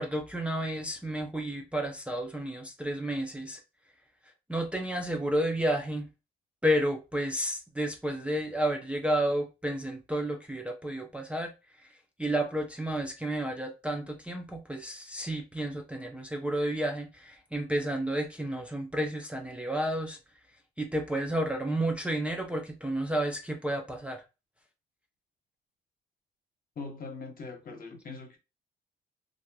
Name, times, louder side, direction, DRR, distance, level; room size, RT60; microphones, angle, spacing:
voice 1, 0.0-3.6 4.5-6.1 6.6-11.5 11.8-11.9 12.2-20.2 20.8-24.2, right 1 dB, 5° right, 0.5 m, -31 dB
voice 2, 26.8-28.4, left 4 dB, 45° left, 1.0 m, -41 dB
3.1 x 2.6 x 2.2 m
cardioid pair, 90°, 20 cm